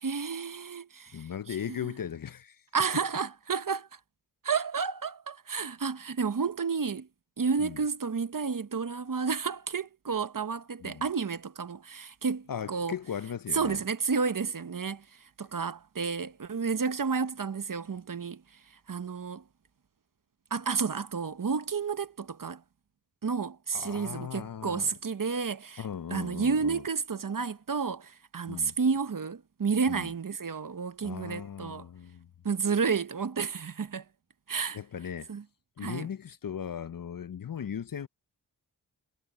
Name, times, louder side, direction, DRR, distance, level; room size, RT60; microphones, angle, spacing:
voice 1, 0.0-1.3 1.8-1.9 2.7-4.0 4.4-7.1 7.4-12.9 13.5-15.0 15.4-18.4 18.9-19.4 20.5-22.6 23.2-25.8 26.1-31.9 32.4-34.0 34.5-34.8 35.3-35.4 35.8-36.1, right 5 dB, 50° right, 1.0 m, -31 dB
voice 2, 1.1-2.6 7.6-7.8 10.8-11.0 12.5-13.8 23.7-24.9 25.8-26.8 28.5-28.8 29.9-30.1 31.0-32.3 34.7-35.3 35.8-38.1, left 8 dB, 55° left, 0.6 m, -38 dB
cardioid pair, 45°, 41 cm